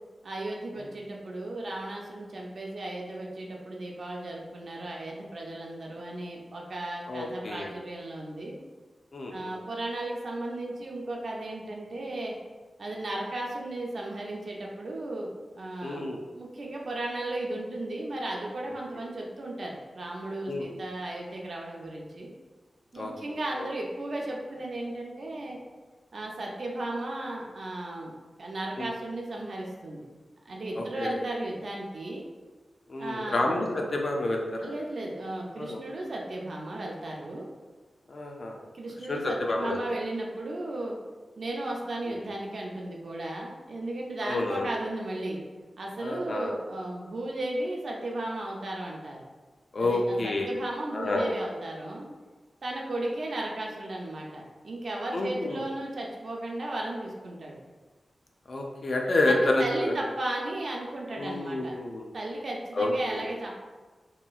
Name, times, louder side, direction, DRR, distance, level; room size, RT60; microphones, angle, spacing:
voice 1, 0.2-8.6 9.3-12.3 12.8-22.3 22.9-25.6 26.1-28.1 28.4-30.0 30.5-32.2 33.0-33.5 34.6-37.5 38.7-41.0 41.4-45.4 45.8-49.2 49.8-52.1 52.6-57.6 59.3-61.7 62.1-63.5, right 1 dB, 55° right, -1 dB, 0.4 m, -35 dB
voice 2, 7.1-7.7 9.1-9.6 15.8-16.2 18.9-19.0 20.5-20.7 22.9-23.1 23.6-23.7 28.8-28.9 30.8-31.1 32.9-34.8 35.6-35.8 38.1-38.6 39.1-39.8 42.1-42.2 44.2-44.7 46.0-46.5 49.7-50.5 50.9-51.3 55.1-55.6 58.5-60.0 61.1-62.1 62.7-63.3, left 2 dB, 50° left, 1 dB, 0.3 m, -29 dB
2.9 x 2.4 x 2.3 m, 1.3 s
wide cardioid pair, 140°, 0 cm